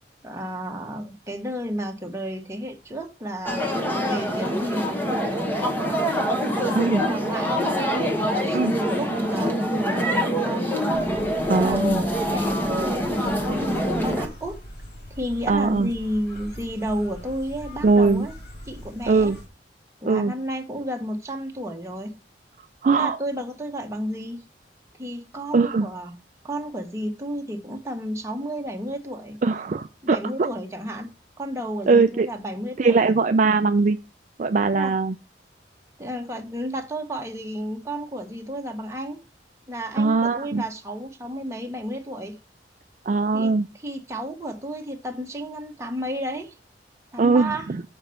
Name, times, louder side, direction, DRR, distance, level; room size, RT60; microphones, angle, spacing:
voice 1, 0.2-3.7 4.0-6.0 6.3-7.6 8.2-10.8 11.5-14.6 15.1-18.3 18.7-19.3 20.0-22.2 22.9-24.4 25.0-26.1 26.4-29.4 30.0-31.1 31.4-33.1 34.7-34.9 36.0-39.2 39.7-42.4 43.3-43.5 43.8-46.5 47.1-47.7, equal, 15° right, 2 dB, 1.3 m, -32 dB
sound 1, 3.5-14.3, equal, 10° left, 1.2 m, -25 dB
sound 2, 10.9-19.5, equal, 55° left, 2.9 m, -41 dB
voice 2, 11.5-12.0 15.5-15.9 17.8-18.3 19.1-19.4 20.0-20.3 22.8-23.2 25.5-25.9 29.4-30.5 31.9-32.3 32.8-34.0 34.4-35.1 40.0-40.6 43.1-43.7 47.2-47.8, right 4 dB, 45° right, 7 dB, 0.4 m, -20 dB
7.1 x 5.2 x 5.7 m, 0.29 s
head